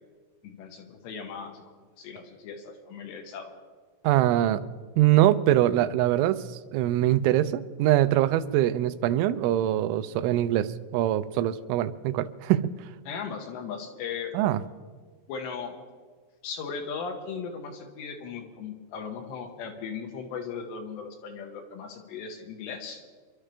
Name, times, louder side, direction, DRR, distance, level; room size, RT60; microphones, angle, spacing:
voice 1, 0.4-1.6 2.0-3.5 13.1-14.3 15.3-15.7 16.4-23.0, left 6 dB, 75° left, 3 dB, 3.3 m, -37 dB
voice 2, 4.0-4.6 5.0-6.4 6.7-12.7 14.3-14.6, right 13 dB, 90° right, 12 dB, 3.1 m, -23 dB
27.0 x 12.0 x 3.4 m, 1.5 s
omnidirectional pair, 5.4 m